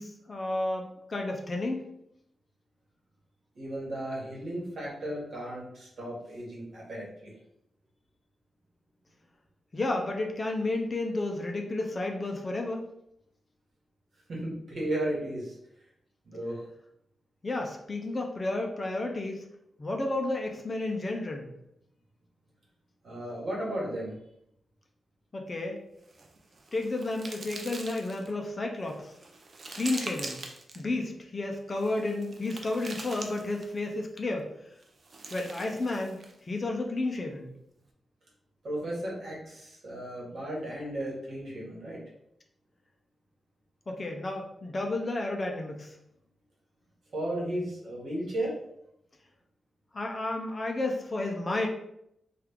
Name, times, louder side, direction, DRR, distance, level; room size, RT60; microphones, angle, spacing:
voice 1, 0.0-1.9 9.7-12.9 17.4-19.4 19.8-21.5 25.3-25.8 26.7-29.1 29.7-30.4 30.8-34.5 35.3-37.5 43.9-46.0 49.9-51.7, left 2 dB, 30° left, 2 dB, 0.4 m, -32 dB
voice 2, 3.5-7.3 14.3-15.5 16.2-16.6 23.0-24.2 38.6-42.0 47.1-48.5, right 1 dB, 60° right, -4 dB, 1.2 m, -35 dB
sound 1, 26.0-28.3 28.9-30.8 31.7-33.8 34.8-36.4, right 3 dB, 40° right, 0.4 m, -43 dB
3.1 x 2.3 x 3.4 m, 0.78 s
wide cardioid pair, 170°, 0 cm